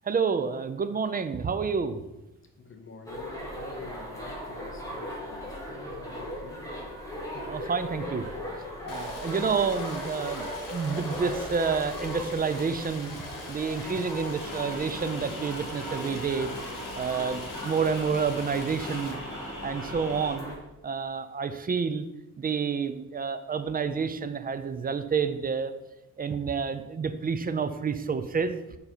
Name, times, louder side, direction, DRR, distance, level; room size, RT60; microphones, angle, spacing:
voice 1, 0.0-2.0 7.3-8.3 8.9-13.2 13.5-16.5 17.0-19.2 19.6-20.5 20.8-22.1 22.4-25.7 26.2-28.6, right 5 dB, 30° right, 10 dB, 0.4 m, -29 dB
voice 2, 2.6-6.7, left 4 dB, 40° left, 4 dB, 0.8 m, -47 dB
sound 1, 3.1-20.6, equal, 10° left, 1.7 m, -38 dB
Stream, 8.9-19.1, left 4 dB, 85° left, 1.6 m, -44 dB
sound 2, 14.3-20.3, left 1 dB, 65° left, 2.4 m, -40 dB
6.8 x 5.4 x 4.4 m, 1.0 s
wide cardioid pair, 165°, 32 cm